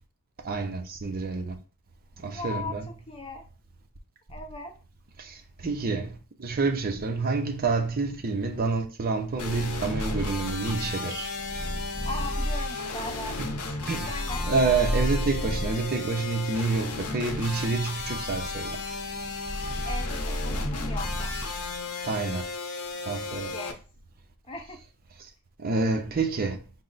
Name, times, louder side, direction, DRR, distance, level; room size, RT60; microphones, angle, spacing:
voice 1, 0.4-1.5 2.2-2.9 5.2-11.3 13.4-13.6 13.9-14.1 14.5-18.8 22.0-22.4 23.1-23.5 25.6-26.6, right 4 dB, 40° right, 0.5 m, -28 dB
voice 2, 2.3-2.8 3.1-3.4 4.3-4.7 12.1-13.4 13.7-14.5 19.8-21.4 23.5-23.8 24.5-24.8, left 2 dB, 25° left, 0.6 m, -38 dB
sound 1, 9.4-23.7, left 4 dB, 90° left, 0.7 m, -35 dB
Purr, 9.7-15.9 16.5-21.8, equal, 5° left, 1.4 m, -33 dB
5.4 x 2.0 x 3.8 m
head